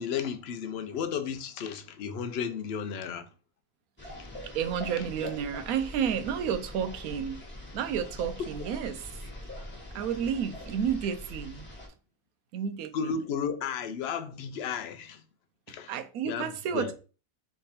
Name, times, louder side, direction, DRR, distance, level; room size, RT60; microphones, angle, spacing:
voice 1, 0.0-3.3 4.2-4.3 5.0-5.1 8.4-8.5 12.9-15.2 15.7-15.9 16.2-16.9, left 7 dB, 60° left, 0.8 m, -33 dB
sound 1, 4.0-11.9, left 1 dB, 10° left, 1.2 m, -43 dB
voice 2, 4.5-7.4 7.7-9.0 9.9-11.7 12.5-13.1 15.9-16.9, right 8 dB, 85° right, 1.1 m, -31 dB
3.4 x 3.4 x 4.2 m
omnidirectional pair, 1.5 m